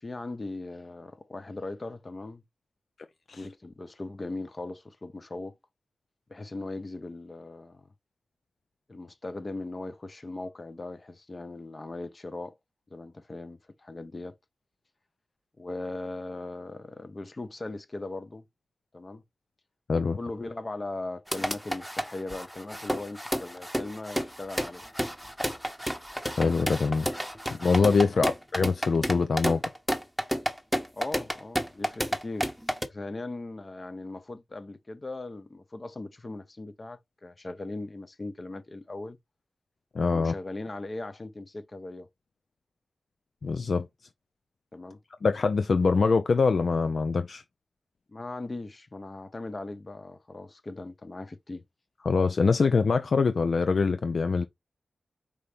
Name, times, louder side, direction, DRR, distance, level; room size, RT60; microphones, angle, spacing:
voice 1, 0.0-2.4 3.3-5.6 6.3-7.9 8.9-12.6 12.9-14.4 15.6-18.5 18.9-19.2 19.9-24.8 28.0-28.3 30.9-32.5 32.9-39.2 40.1-42.1 44.7-45.0 48.1-51.6, left 2 dB, 40° left, 0.7 m, -39 dB
sound 1, 21.3-32.9, equal, ahead, 0.9 m, -31 dB
voice 2, 26.4-27.1 27.5-29.6 39.9-40.3 43.4-43.9 45.2-47.4 52.1-54.4, left 4 dB, 65° left, 0.4 m, -24 dB
4.8 x 2.8 x 3.3 m
cardioid pair, 45°, 0 cm